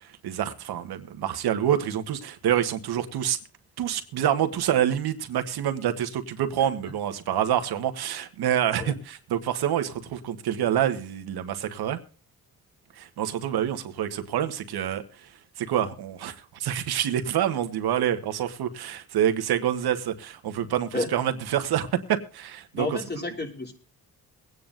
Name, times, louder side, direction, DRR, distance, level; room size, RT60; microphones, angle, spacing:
voice 1, 0.0-3.4 3.8-12.0 13.0-15.3 15.6-23.0, right 10 dB, 90° right, 1.4 m, -27 dB
voice 2, 22.7-23.7, left 2 dB, 25° left, 3.4 m, -30 dB
23.0 x 9.6 x 2.5 m
cardioid pair, 90°, 37 cm